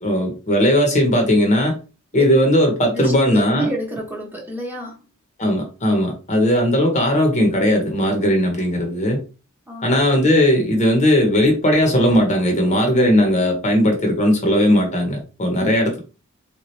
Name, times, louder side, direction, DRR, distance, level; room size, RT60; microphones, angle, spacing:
voice 1, 0.0-1.7 2.1-3.7 5.4-9.2 9.8-16.0, equal, 35° left, 0.9 m, -17 dB
voice 2, 2.9-5.0 9.7-9.9, equal, 10° right, 1.0 m, -29 dB
3.5 x 3.0 x 3.1 m
head